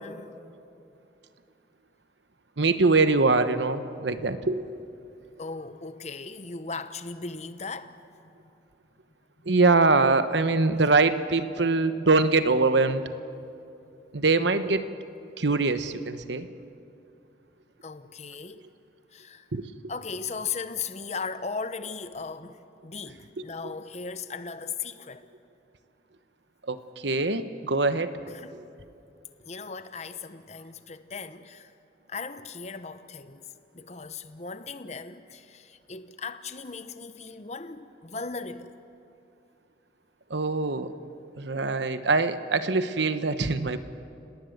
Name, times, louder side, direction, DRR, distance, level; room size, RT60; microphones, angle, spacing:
voice 1, 0.0-0.3 4.1-4.3 5.4-8.0 8.4-8.5 17.8-18.7 19.1-19.5 19.9-25.3 28.3-28.6 29.4-31.7 32.1-33.5 33.7-38.8, left 5 dB, 40° left, 0.9 m, -37 dB
voice 2, 2.6-4.6 9.5-13.0 14.1-14.9 15.4-16.5 19.5-19.7 26.7-26.8 27.0-28.1 40.3-40.9 41.4-43.8, right 3 dB, 80° right, 1.1 m, -23 dB
29.5 x 18.5 x 7.9 m
head